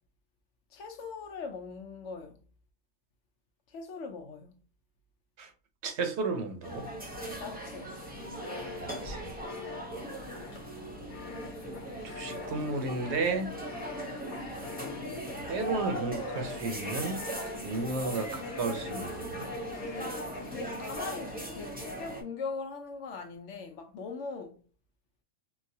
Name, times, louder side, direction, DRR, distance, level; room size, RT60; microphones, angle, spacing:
voice 1, 0.7-2.4 3.7-4.6 7.4-7.9 20.5-24.6, left 4 dB, 75° left, 0.9 m, -41 dB
voice 2, 5.8-6.9 8.8-9.4 12.0-13.5 15.5-17.2 17.6-19.5, right 3 dB, 65° right, 0.8 m, -33 dB
sound 1, 6.6-22.2, right 1 dB, 10° right, 0.6 m, -39 dB
sound 2, 7.8-21.3, left 7 dB, 55° left, 0.5 m, -47 dB
3.9 x 2.2 x 2.7 m
omnidirectional pair, 1.3 m